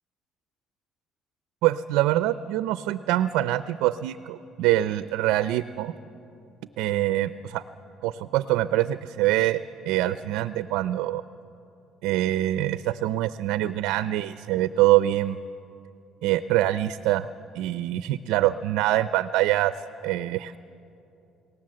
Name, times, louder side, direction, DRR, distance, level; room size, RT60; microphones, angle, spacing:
voice 1, 1.6-5.9 6.8-7.6 8.0-9.6 9.9-11.2 12.0-15.4 16.2-17.3 17.5-19.7 20.0-20.6, right 14 dB, 90° right, 13 dB, 0.6 m, -24 dB
29.5 x 18.0 x 7.7 m, 2.8 s
cardioid pair, 130°, 0 cm